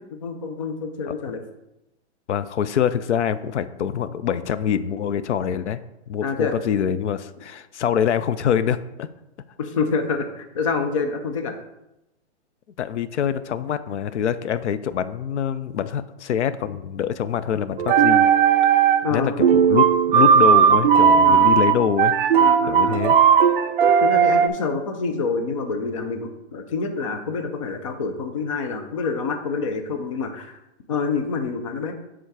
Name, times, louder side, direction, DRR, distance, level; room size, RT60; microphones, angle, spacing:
voice 1, 0.0-1.4 6.2-6.5 9.6-11.5 19.0-19.7 21.2-21.5 22.4-23.0 24.0-30.6 30.9-31.9, left 4 dB, 30° left, 6 dB, 0.5 m, -27 dB
voice 2, 2.3-5.8 6.1-9.1 12.8-18.3 19.1-22.1 22.7-23.1, left 8 dB, 80° left, 13 dB, 0.6 m, -25 dB
sound 1, 17.8-19.1 19.4-24.5, right 7 dB, 50° right, 0.5 m, -16 dB
8.0 x 3.7 x 4.7 m, 0.92 s
hypercardioid pair, 165°, 35 cm